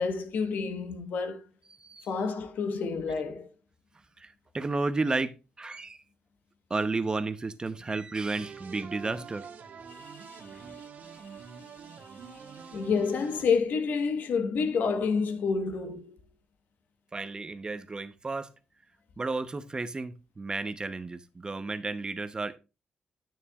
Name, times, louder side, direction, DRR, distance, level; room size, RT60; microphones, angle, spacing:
voice 1, 0.0-1.4 2.1-3.5 10.0-10.5 12.7-16.2, left 5 dB, 80° left, 1.3 m, -29 dB
voice 2, 4.2-6.0 6.7-9.5 10.5-10.6 17.1-18.5 19.2-22.6, right 3 dB, 30° right, 0.8 m, -32 dB
sound 1, 8.3-13.5, right 6 dB, 65° right, 1.4 m, -46 dB
9.8 x 9.1 x 2.4 m
cardioid pair, 95°, 3 cm